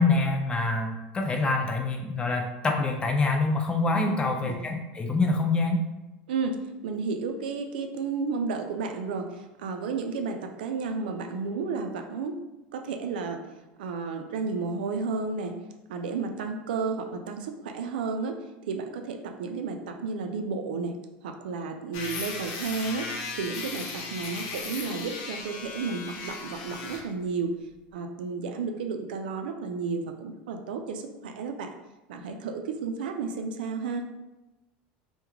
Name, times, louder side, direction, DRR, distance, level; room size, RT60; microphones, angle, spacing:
voice 1, 0.0-5.8, left 3 dB, 20° left, 3 dB, 0.5 m, -25 dB
voice 2, 4.1-4.6 6.3-12.4 12.7-13.4 13.8-15.5 15.9-18.3 18.7-20.9 21.2-23.1 23.4-27.5 27.9-31.7 32.1-34.1, right 4 dB, 90° right, 5 dB, 0.4 m, -32 dB
sound 1, 21.9-27.1, left 4 dB, 70° left, 0.7 m, -37 dB
3.0 x 2.2 x 3.5 m, 1.0 s
supercardioid pair, 115°, 5 cm